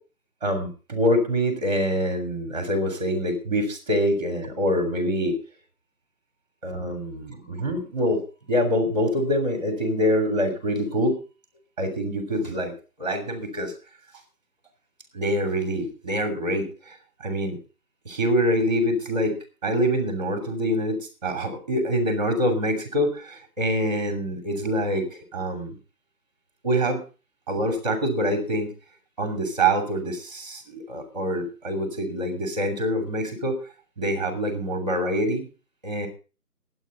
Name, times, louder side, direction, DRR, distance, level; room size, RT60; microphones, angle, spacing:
voice 1, 0.4-5.4 6.6-8.2 8.5-11.2 11.8-12.7 13.0-13.7 15.1-17.6 18.0-19.3 19.6-25.8 26.6-27.0 27.5-28.7 29.2-33.6 34.0-35.5 35.8-36.1, equal, 25° right, 5 dB, 2.9 m, -25 dB
20.5 x 8.8 x 3.9 m, 0.35 s
figure-of-eight pair, 165°, 47 cm